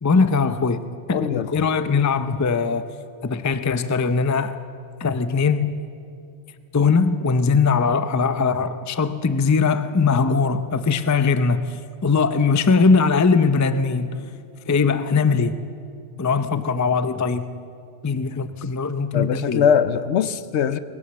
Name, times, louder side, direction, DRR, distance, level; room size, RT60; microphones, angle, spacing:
voice 1, 0.0-1.2 1.5-2.9 3.2-4.6 5.0-5.8 6.7-14.3 14.7-15.7 16.2-17.6 18.0-19.7, left 4 dB, 25° left, 0.4 m, -20 dB
voice 2, 1.1-1.7 19.1-20.8, left 8 dB, 70° left, 1.0 m, -21 dB
20.5 x 17.0 x 7.6 m
omnidirectional pair, 1.2 m